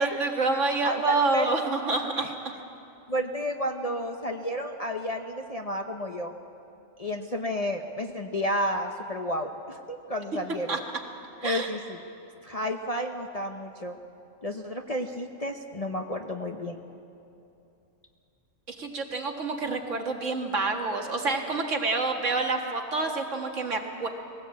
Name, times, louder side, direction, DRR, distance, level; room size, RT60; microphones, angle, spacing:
voice 1, 0.0-2.5 10.7-10.8 11.4-11.7 18.7-24.1, right 3 dB, 60° right, 2 dB, 2.1 m, -28 dB
voice 2, 0.8-1.5 2.2-2.3 3.1-6.3 7.0-10.8 11.4-12.0 12.4-14.0 14.4-16.8, equal, 30° left, 4 dB, 0.9 m, -31 dB
21.5 x 17.0 x 8.4 m, 2.7 s
omnidirectional pair, 1.4 m